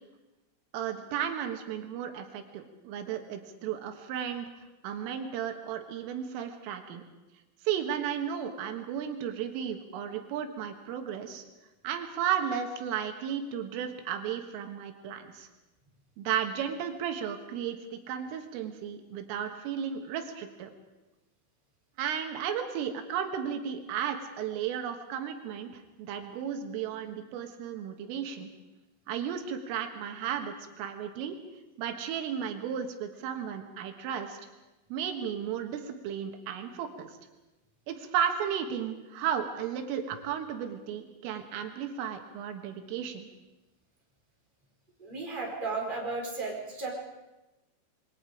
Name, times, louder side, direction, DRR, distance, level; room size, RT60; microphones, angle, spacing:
voice 1, 0.7-4.5 4.8-7.1 7.6-11.4 11.8-15.5 16.2-20.7 22.0-28.5 29.1-31.4 31.8-34.4 34.9-37.1 37.9-43.3, right 8 dB, 85° right, 5 dB, 4.1 m, -34 dB
voice 2, 45.0-46.9, right 3 dB, 10° right, -2 dB, 4.3 m, -34 dB
27.5 x 23.0 x 5.1 m, 1.0 s
omnidirectional pair, 5.7 m